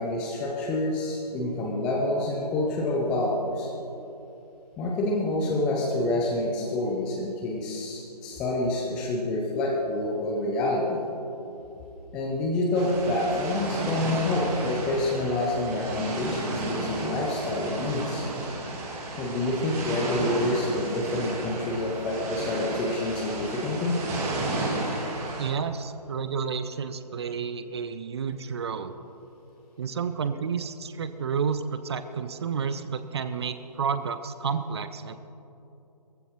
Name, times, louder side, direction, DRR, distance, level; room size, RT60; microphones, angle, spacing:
voice 1, 0.0-3.7 4.8-11.0 12.1-18.3 19.2-24.0, left 2 dB, 5° left, -1 dB, 0.4 m, -27 dB
sound 1, 12.7-25.5, right 2 dB, 15° right, 1.7 m, -33 dB
voice 2, 25.4-28.9 29.8-35.1, right 6 dB, 40° right, 11 dB, 0.7 m, -30 dB
22.0 x 15.0 x 3.1 m, 2.9 s
figure-of-eight pair, 150°, 21 cm